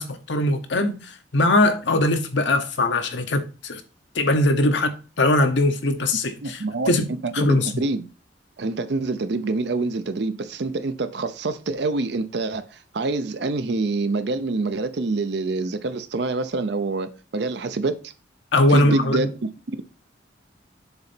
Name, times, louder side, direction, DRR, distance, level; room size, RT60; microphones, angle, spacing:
voice 1, 0.0-3.8 4.1-7.1 7.3-7.8 18.5-19.3, left 1 dB, 70° left, 0.9 m, -21 dB
voice 2, 6.4-6.9 7.2-8.1 8.6-12.7 12.9-18.0 18.7-19.5, right 3 dB, 60° right, 0.5 m, -26 dB
6.8 x 3.9 x 4.3 m
head